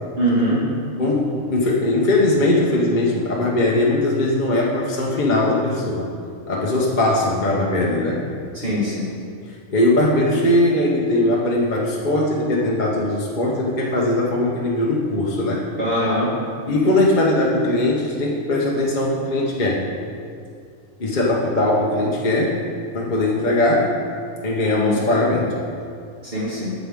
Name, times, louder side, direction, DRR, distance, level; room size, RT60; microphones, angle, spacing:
voice 1, 0.2-0.6 8.5-9.1 15.8-16.3 24.6-25.0 26.2-26.7, equal, 40° right, -10 dB, 1.9 m, -22 dB
voice 2, 1.0-6.1 6.5-8.3 9.7-15.6 16.7-19.9 21.0-22.6 22.9-23.9 24.4-25.6, left 1 dB, 35° left, -4 dB, 0.9 m, -20 dB
9.1 x 7.4 x 3.6 m, 2.3 s
omnidirectional pair, 1.5 m